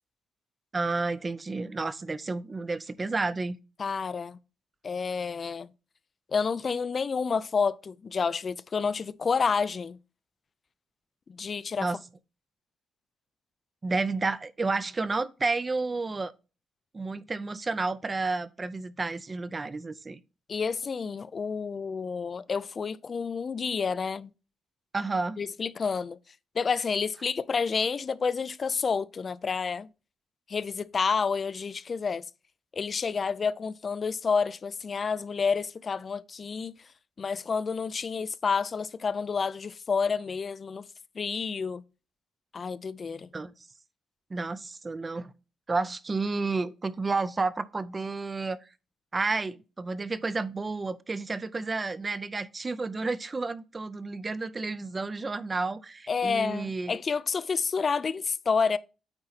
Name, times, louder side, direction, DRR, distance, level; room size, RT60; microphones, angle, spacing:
voice 1, 0.7-3.6 11.8-12.0 13.8-16.3 16.9-20.2 24.9-25.4 43.3-43.5 44.3-45.3 45.7-48.6 49.1-56.9, right 3 dB, 25° right, 0.5 m, -31 dB
voice 2, 3.8-4.4 4.8-5.7 6.3-10.0 11.3-11.9 20.5-24.3 25.4-26.2 26.5-29.9 30.5-32.2 32.7-36.9 37.2-40.9 41.2-41.8 42.5-43.3 56.1-58.8, left 5 dB, 35° left, 0.4 m, -29 dB
8.8 x 4.1 x 4.0 m
cardioid pair, 125°, 0 cm